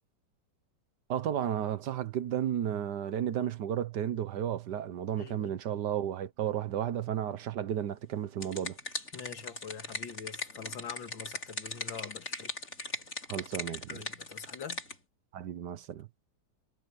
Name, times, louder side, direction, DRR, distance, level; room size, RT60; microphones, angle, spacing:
voice 1, 1.1-8.8 13.3-14.0 15.3-16.1, right 10 dB, 70° right, 1.4 m, -33 dB
voice 2, 5.1-5.5 9.1-12.5 13.9-14.8, left 7 dB, 85° left, 2.5 m, -44 dB
sound 1, 8.1-15.0, left 2 dB, 45° left, 5.6 m, -39 dB
omnidirectional pair, 2.0 m